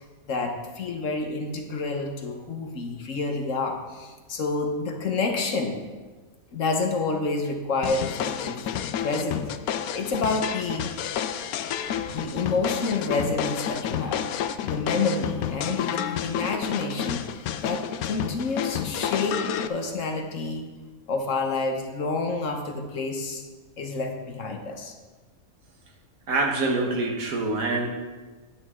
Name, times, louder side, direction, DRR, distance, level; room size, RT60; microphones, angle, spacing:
voice 1, 0.0-5.8 6.5-8.6 9.0-10.9 12.1-14.2 14.6-17.3 17.6-20.7 21.1-23.4 23.8-24.9, left 3 dB, 65° left, 4 dB, 1.4 m, -29 dB
sound 1, 7.8-19.7, left 9 dB, 85° left, 1.0 m, -30 dB
voice 2, 26.3-27.9, right 2 dB, 75° right, 2 dB, 1.8 m, -25 dB
10.5 x 9.4 x 3.7 m, 1.3 s
omnidirectional pair, 1.5 m